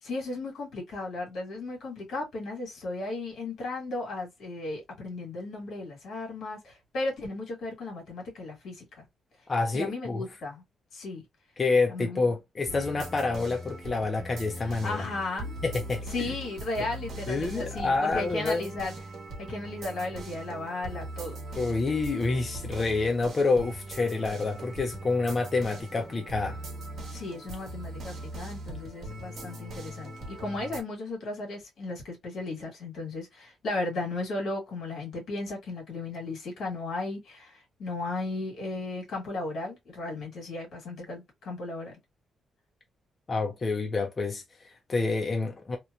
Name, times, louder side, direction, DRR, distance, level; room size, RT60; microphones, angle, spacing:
voice 1, 0.0-9.0 9.7-10.6 10.9-11.2 11.9-12.2 14.6-15.6 16.1-18.9 19.4-21.4 27.1-42.0, left 2 dB, 75° left, 1.5 m, -35 dB
voice 2, 9.5-10.2 11.6-15.0 15.6-16.3 17.3-18.7 21.6-26.6 43.3-45.8, left 3 dB, 30° left, 0.5 m, -28 dB
sound 1, 12.7-30.8, right 1 dB, 65° right, 1.0 m, -40 dB
2.9 x 2.1 x 2.4 m
cardioid pair, 135°, 0 cm